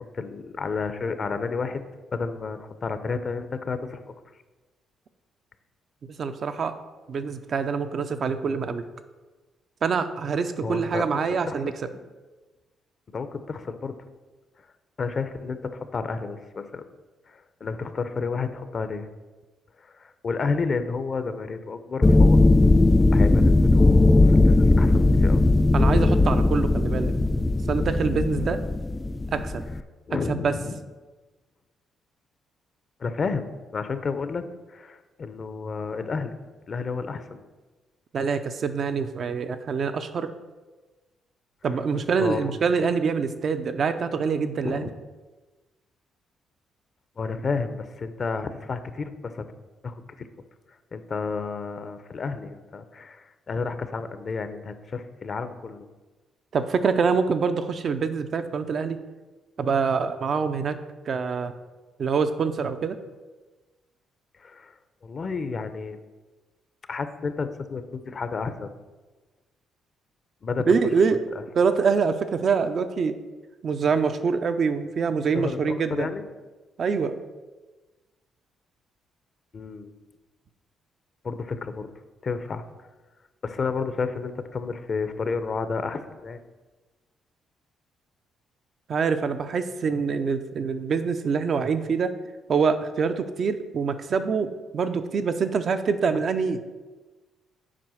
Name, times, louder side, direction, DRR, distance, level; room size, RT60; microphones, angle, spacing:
voice 1, 0.0-1.8 2.1-4.0 10.6-11.0 11.3-11.6 11.9-12.0 13.1-13.9 15.0-16.8 17.3-19.1 19.8-22.4 23.1-25.4 30.1-30.8 33.0-36.4 36.7-37.4 41.9-42.5 44.6-44.9 47.2-49.4 49.8-50.3 50.9-55.9 64.4-64.7 65.0-66.0 66.9-68.8 70.4-70.7 75.3-76.2 79.5-79.9 81.2-81.9 82.2-82.6 83.4-86.4, left 4 dB, 45° left, 10 dB, 0.7 m, -31 dB
voice 2, 6.2-6.8 7.1-8.8 9.8-11.7 25.7-27.1 27.7-28.6 29.3-29.6 30.3-30.5 38.1-40.3 41.6-44.9 56.5-59.0 59.6-60.8 61.1-61.5 62.0-63.0 70.7-71.2 71.5-73.1 73.6-76.1 76.8-77.2 88.9-92.2 92.5-96.6, right 5 dB, 55° right, 9 dB, 0.7 m, -25 dB
sound 1, 22.0-29.8, left 2 dB, 20° left, 0.3 m, -18 dB
7.6 x 4.9 x 6.3 m, 1.2 s
cardioid pair, 90°, 0 cm